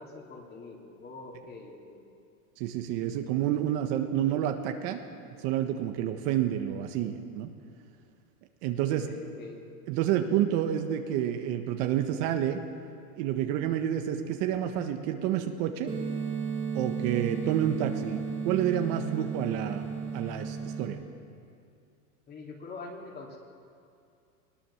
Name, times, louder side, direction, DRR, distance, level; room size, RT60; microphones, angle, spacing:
voice 1, 0.0-2.1 8.9-9.6 22.3-23.4, left 3 dB, 20° left, 0 dB, 3.1 m, -44 dB
voice 2, 2.6-5.0 5.4-7.5 8.6-9.1 9.9-12.6 13.2-15.9 16.7-19.8 20.1-21.0, right 10 dB, 50° right, 6 dB, 1.5 m, -29 dB
sound 1, 15.9-20.9, right 6 dB, 10° right, 3.0 m, -34 dB
20.5 x 19.0 x 7.3 m, 2.4 s
supercardioid pair, 145°, 43 cm